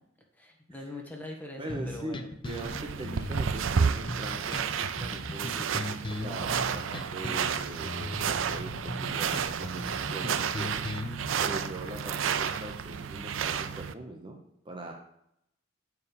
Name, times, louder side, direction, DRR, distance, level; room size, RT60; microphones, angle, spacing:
voice 1, 0.3-2.3 11.5-11.7, left 2 dB, 10° left, 0 dB, 1.4 m, -42 dB
voice 2, 1.6-11.1 11.4-14.4 14.6-14.9, right 1 dB, 25° right, 2 dB, 0.8 m, -41 dB
sound 1, 1.7-11.3, left 2 dB, 25° left, 0.5 m, -39 dB
sound 2, 2.4-13.9, right 7 dB, 70° right, 0.4 m, -31 dB
8.1 x 4.7 x 5.2 m, 0.76 s
head